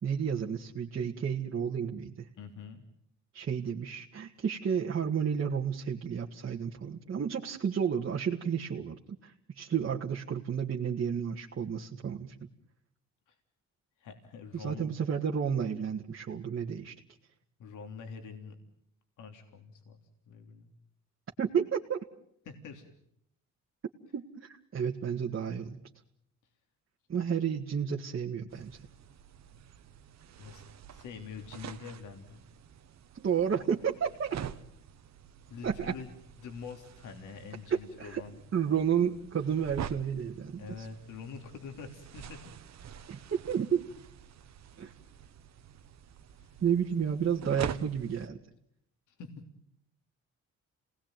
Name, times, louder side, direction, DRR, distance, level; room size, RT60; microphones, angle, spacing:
voice 1, 0.0-2.3 3.3-12.4 14.5-16.9 21.4-22.0 24.1-25.8 27.1-28.8 33.1-34.4 35.6-35.9 37.7-38.2 38.5-40.9 43.1-43.9 44.8-44.9 46.6-48.4, right 7 dB, 45° right, -1 dB, 2.0 m, -31 dB
voice 2, 2.3-2.8 13.3-13.4 14.0-14.9 17.6-18.6 19.2-20.7 22.4-22.9 30.4-30.6 30.9-32.4 35.5-36.1 36.4-38.4 40.6-42.4 43.1-43.3 46.4-46.6 49.1-49.3, left 5 dB, 85° left, 5 dB, 3.3 m, -45 dB
sound 1, 28.5-48.3, right 8 dB, 60° right, 1.5 m, -46 dB
28.5 x 19.0 x 9.2 m, 0.75 s
cardioid pair, 90°, 30 cm